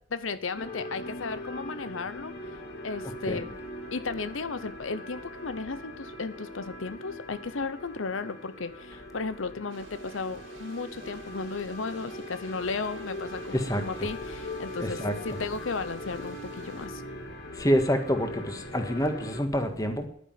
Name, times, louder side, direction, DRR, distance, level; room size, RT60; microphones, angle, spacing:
voice 1, 0.1-2.3 2.8-3.5 3.9-17.0, left 4 dB, 80° left, 13 dB, 0.8 m, -35 dB
sound 1, 0.5-19.4, left 1 dB, 55° left, 2.7 m, -41 dB
sound 2, 9.7-16.9, right 3 dB, 80° right, 4.0 m, -51 dB
voice 2, 13.5-13.8 14.8-15.2 17.5-20.1, equal, 20° left, 6 dB, 1.8 m, -27 dB
11.5 x 9.9 x 7.7 m, 0.66 s
head